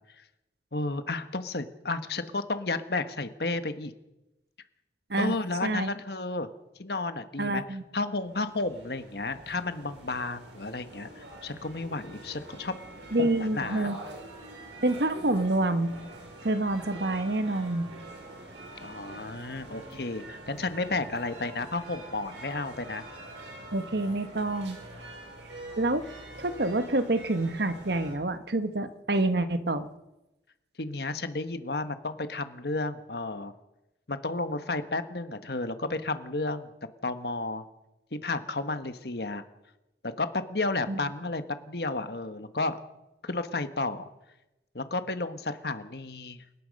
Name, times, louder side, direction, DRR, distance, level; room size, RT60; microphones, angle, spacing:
voice 1, 0.7-3.9 5.2-6.5 6.8-7.6 7.9-12.7 13.2-13.9 18.8-23.0 30.8-33.5 34.1-36.7 37.0-37.6 38.1-39.4 40.0-42.8 43.2-44.1 44.7-46.4, left 2 dB, 60° left, 10 dB, 1.4 m, -32 dB
voice 2, 7.4-7.8 13.1-14.0 14.8-15.9 16.4-17.9 23.7-24.8 25.8-26.1 26.4-29.9 40.9-41.0, right 2 dB, 65° right, 10 dB, 1.4 m, -27 dB
sound 1, 8.2-28.1, right 2 dB, 85° right, 6.1 m, -45 dB
28.5 x 18.0 x 5.4 m, 0.97 s
head